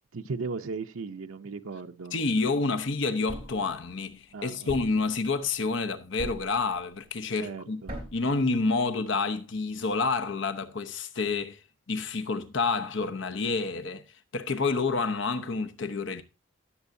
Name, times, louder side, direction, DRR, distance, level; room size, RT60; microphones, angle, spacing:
voice 1, 0.1-2.2 4.3-4.7 7.4-7.9, right 4 dB, 85° right, 0.7 m, -36 dB
voice 2, 2.1-7.8 8.1-11.6 11.9-14.0 14.3-16.2, left 4 dB, 65° left, 0.8 m, -28 dB
Thump thud, 3.3-3.7 4.7-5.1 6.2-6.6 7.9-8.3, equal, 25° right, 3.4 m, -39 dB
17.0 x 7.1 x 2.7 m
head